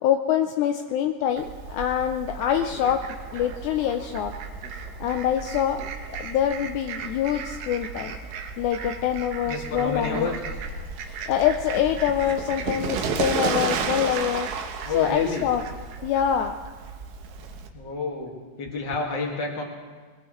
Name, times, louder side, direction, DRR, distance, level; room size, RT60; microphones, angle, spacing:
voice 1, 0.0-4.3 5.0-5.8 6.2-8.1 8.6-10.4 11.3-14.5 14.9-15.6 16.0-16.6, left 9 dB, 80° left, 5 dB, 2.0 m, -25 dB
Fowl, 1.4-17.7, right 5 dB, 90° right, 2.8 m, -33 dB
voice 2, 9.4-10.3 14.8-15.5 17.7-19.6, left 4 dB, 40° left, 0 dB, 2.4 m, -29 dB
21.0 x 20.0 x 3.2 m, 1.5 s
omnidirectional pair, 3.7 m